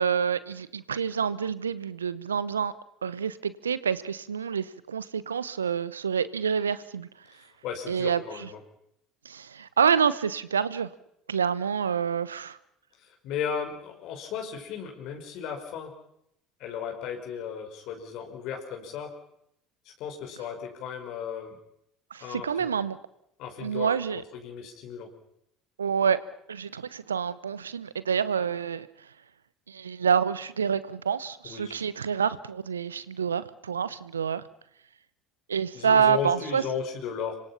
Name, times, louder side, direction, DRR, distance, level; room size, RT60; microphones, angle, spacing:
voice 1, 0.0-2.7 3.0-7.1 7.9-8.5 9.2-10.9 11.3-12.6 22.1-23.0 23.6-24.2 25.8-26.2 26.5-28.9 29.7-34.4 35.5-36.8 37.2-37.3, right 7 dB, 90° right, 18 dB, 0.9 m, -27 dB
voice 2, 7.6-8.6 13.2-15.9 16.6-19.1 20.0-21.6 22.2-22.7 23.4-25.1 31.4-31.7 35.7-37.4, left 7 dB, 60° left, 3 dB, 5.4 m, -35 dB
27.0 x 24.5 x 5.8 m, 0.74 s
hypercardioid pair, 65°, 0 cm